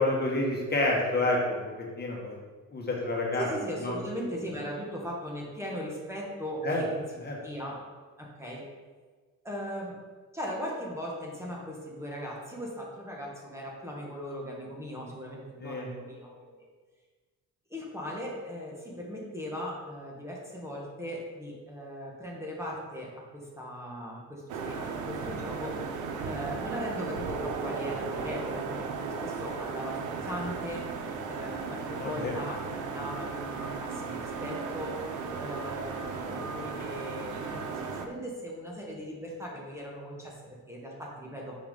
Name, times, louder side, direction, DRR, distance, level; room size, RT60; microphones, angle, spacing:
voice 1, 0.0-1.6 2.0-2.4 2.7-3.5 3.8-3.9 6.6-6.8 7.2-7.4 15.6-15.9 31.9-32.3, left 2 dB, 35° left, -2 dB, 1.5 m, -28 dB
voice 2, 3.4-7.0 7.4-7.8 8.2-8.6 9.4-10.0 10.3-16.7 17.7-25.8 26.3-35.0 35.4-41.6, equal, 10° right, -3 dB, 1.7 m, -38 dB
sound 1, 24.5-38.1, right 5 dB, 80° right, 0.8 m, -36 dB
5.5 x 4.6 x 5.4 m, 1.4 s
cardioid pair, 90°, 30 cm